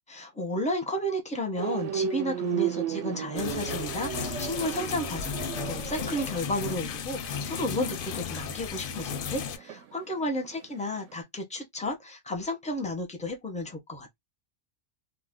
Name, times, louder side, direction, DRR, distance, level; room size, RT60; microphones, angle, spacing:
voice 1, 0.1-5.4 5.7-14.2, left 1 dB, 10° left, 0.5 m, -32 dB
sound 1, 1.6-10.6 11.0-11.2, right 10 dB, 80° right, 0.9 m, -34 dB
sound 2, 3.4-9.6, left 7 dB, 60° left, 0.6 m, -34 dB
2.4 x 2.2 x 3.5 m
omnidirectional pair, 1.2 m